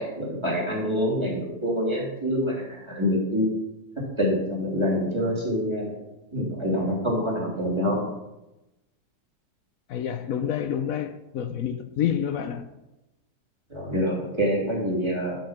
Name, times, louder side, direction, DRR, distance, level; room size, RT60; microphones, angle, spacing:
voice 1, 0.0-3.5 4.2-5.9 6.3-8.0 13.7-15.4, equal, 15° right, 3.1 m, -26 dB
voice 2, 9.9-12.7, left 9 dB, 65° left, 0.9 m, -28 dB
8.7 x 7.8 x 5.7 m
omnidirectional pair, 1.8 m